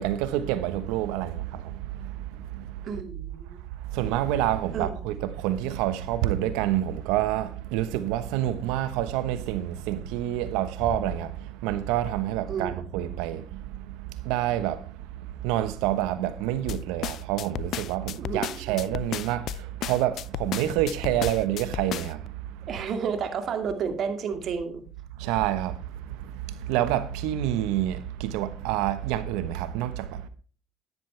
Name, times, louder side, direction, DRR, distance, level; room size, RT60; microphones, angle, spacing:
voice 1, 0.0-3.0 3.8-22.4 22.7-22.8 25.2-30.3, right 12 dB, 80° right, 1.1 m, -28 dB
voice 2, 2.8-3.7 4.7-5.1 12.5-12.9 18.2-18.8 22.7-24.8, right 6 dB, 55° right, 2.3 m, -31 dB
Bass drum, 10.8-12.2, left 2 dB, 5° left, 3.1 m, -40 dB
sound 1, 16.7-22.3, left 12 dB, 65° left, 0.5 m, -34 dB
11.0 x 10.5 x 3.4 m
supercardioid pair, 75°, 0 cm